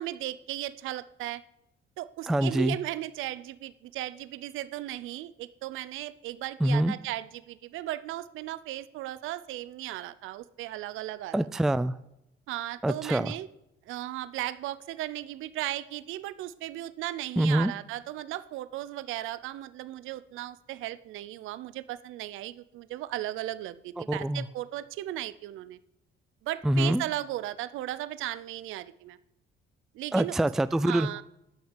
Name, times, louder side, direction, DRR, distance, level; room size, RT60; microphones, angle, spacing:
voice 1, 0.0-1.4 2.0-11.5 12.5-13.5 13.9-25.8 26.4-29.2 29.9-30.3 30.8-31.2, right 14 dB, 85° right, 16 dB, 0.5 m, -36 dB
voice 2, 2.3-2.8 6.6-6.9 11.3-12.0 12.8-13.3 17.4-17.7 24.0-24.5 26.6-27.0 30.1-31.1, right 1 dB, ahead, 14 dB, 0.3 m, -25 dB
10.5 x 5.9 x 7.4 m, 0.86 s
cardioid pair, 90°, 20 cm